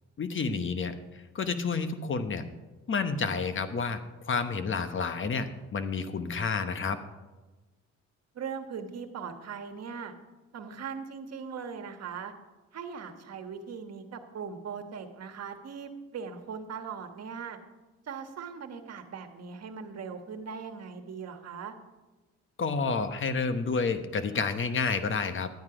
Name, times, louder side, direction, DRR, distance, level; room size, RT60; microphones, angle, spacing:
voice 1, 0.2-2.4 2.9-4.0 4.2-7.0 22.6-25.5, left 4 dB, 40° left, 10 dB, 1.1 m, -30 dB
voice 2, 8.3-10.1 10.5-12.3 12.7-17.6 18.0-21.7, right 6 dB, 55° right, 6 dB, 1.5 m, -40 dB
12.0 x 9.4 x 5.0 m, 1.2 s
cardioid pair, 90°, 30 cm